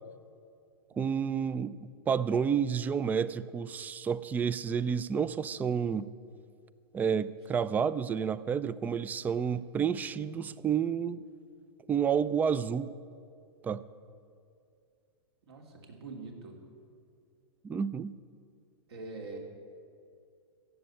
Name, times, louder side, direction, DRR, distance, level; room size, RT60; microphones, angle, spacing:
voice 1, 1.0-1.8 2.1-6.1 6.9-11.2 11.9-12.9 13.6-13.8 17.6-18.1, right 7 dB, 10° right, 18 dB, 0.3 m, -30 dB
voice 2, 15.5-16.5 18.9-19.4, right 3 dB, 70° right, 2 dB, 3.0 m, -43 dB
15.0 x 7.5 x 9.9 m, 2.4 s
hypercardioid pair, 125°, 14 cm